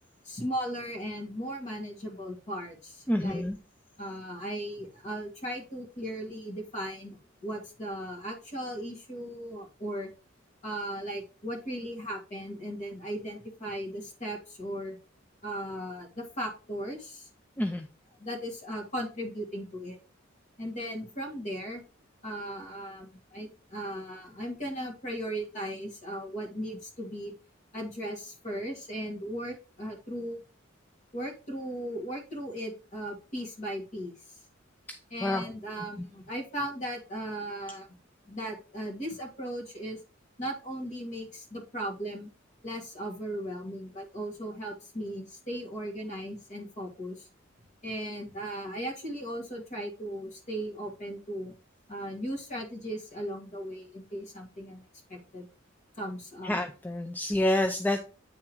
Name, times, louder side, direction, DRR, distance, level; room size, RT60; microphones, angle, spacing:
voice 1, 0.2-3.4 4.0-10.1 10.6-15.0 15.4-17.3 18.2-20.0 20.6-21.8 22.2-27.3 27.7-30.4 31.1-34.1 35.1-37.9 38.3-40.0 40.4-42.3 42.6-47.3 47.8-51.5 51.9-55.5 56.0-56.5, equal, 40° left, 0 dB, 2.0 m, -37 dB
voice 2, 3.1-3.6 17.6-17.9 34.9-35.4 56.4-58.0, left 1 dB, 10° left, 5 dB, 0.5 m, -28 dB
8.8 x 3.6 x 4.5 m, 0.36 s
head